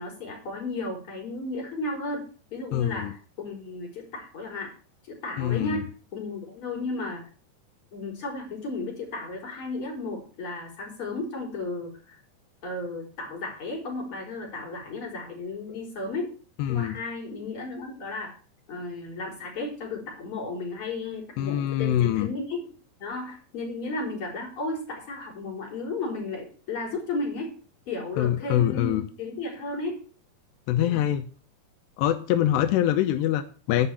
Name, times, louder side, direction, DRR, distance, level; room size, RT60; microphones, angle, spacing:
voice 1, 0.0-4.7 5.1-7.3 7.9-12.2 12.6-16.3 16.7-18.3 18.7-22.6 23.0-27.5 27.9-30.0 30.8-31.0, left 2 dB, 30° left, -1 dB, 4.5 m, -34 dB
voice 2, 2.7-3.1 5.4-5.8 16.6-17.0 21.4-22.3 28.2-29.0 30.7-31.2 32.0-33.9, left 11 dB, 85° left, 8 dB, 2.9 m, -24 dB
9.8 x 5.7 x 8.3 m, 0.41 s
omnidirectional pair, 4.9 m